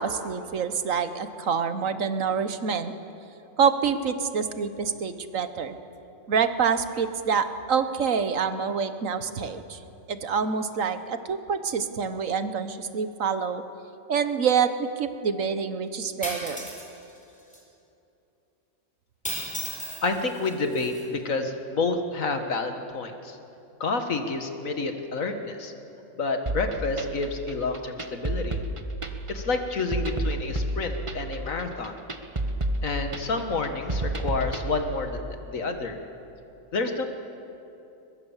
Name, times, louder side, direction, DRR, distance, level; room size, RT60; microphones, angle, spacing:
voice 1, 0.0-2.9 3.6-5.8 6.3-9.8 10.1-13.6 14.1-16.7, right 6 dB, 65° right, 10 dB, 1.5 m, -26 dB
sound 1, 16.2-16.9 17.5-17.6 19.3-21.0, equal, 5° left, 4.3 m, -35 dB
voice 2, 20.0-23.4 23.8-25.7 26.2-28.6 29.3-31.9 32.8-36.0 36.7-37.1, left 3 dB, 70° left, 6 dB, 2.0 m, -29 dB
sound 2, 26.5-34.7, right 1 dB, 25° right, 1.1 m, -30 dB
23.0 x 21.0 x 7.3 m, 2.8 s
omnidirectional pair, 1.5 m